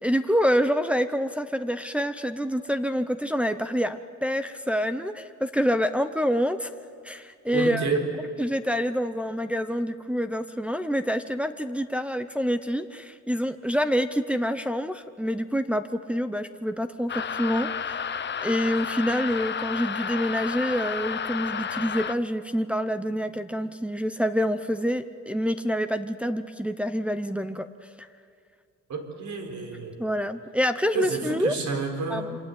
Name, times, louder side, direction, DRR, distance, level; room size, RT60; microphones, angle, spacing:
voice 1, 0.0-6.7 7.0-7.9 8.4-18.1 18.4-27.7 28.0-28.1 30.0-31.5 32.1-32.4, equal, 5° right, 7 dB, 0.8 m, -27 dB
voice 2, 7.5-8.1 28.9-30.0 30.9-32.3, right 4 dB, 70° right, 3 dB, 4.8 m, -29 dB
sound 1, 17.1-22.2, left 7 dB, 35° left, 0.8 m, -31 dB
27.5 x 26.0 x 8.5 m, 2.4 s
cardioid pair, 135°, 31 cm